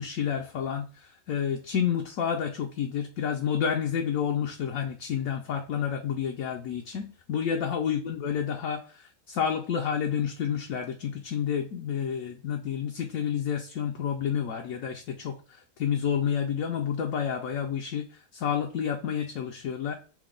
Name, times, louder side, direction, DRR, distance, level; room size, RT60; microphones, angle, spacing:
voice 1, 0.0-15.3 15.8-18.0 18.3-19.9, left 8 dB, 70° left, 2 dB, 1.0 m, -29 dB
6.0 x 2.2 x 3.7 m, 0.38 s
omnidirectional pair, 1.6 m